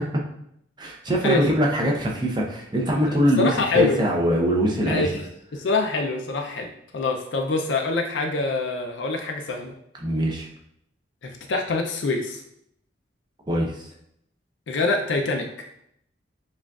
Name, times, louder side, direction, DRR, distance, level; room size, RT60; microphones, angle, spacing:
voice 1, 0.8-5.1 10.0-10.5 13.5-13.9, equal, 25° right, -1 dB, 0.7 m, -22 dB
voice 2, 3.1-4.0 4.9-5.2 5.5-9.7 11.2-12.4 14.7-15.7, left 3 dB, 75° left, 2 dB, 0.5 m, -25 dB
7.1 x 2.4 x 2.3 m, 0.73 s
head